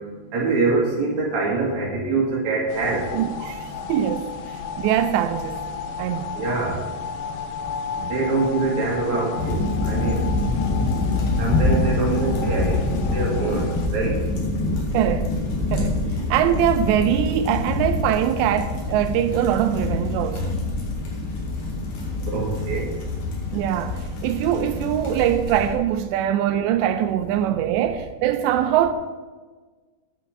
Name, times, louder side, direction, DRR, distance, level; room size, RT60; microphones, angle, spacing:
voice 1, 0.3-3.0 6.3-6.8 8.0-10.2 11.4-13.6 13.9-14.2 22.3-22.8, right 3 dB, 50° right, 3.0 m, -24 dB
sound 1, 2.7-13.9, left 6 dB, 85° left, 2.0 m, -33 dB
voice 2, 3.1-4.3 4.8-5.6 6.0-6.3 14.9-15.3 15.7-16.0 16.3-20.5 23.5-28.9, right 10 dB, 85° right, 2.8 m, -22 dB
sound 2, 9.4-25.7, left 2 dB, 60° left, 3.8 m, -25 dB
9.1 x 8.8 x 5.9 m
omnidirectional pair, 5.0 m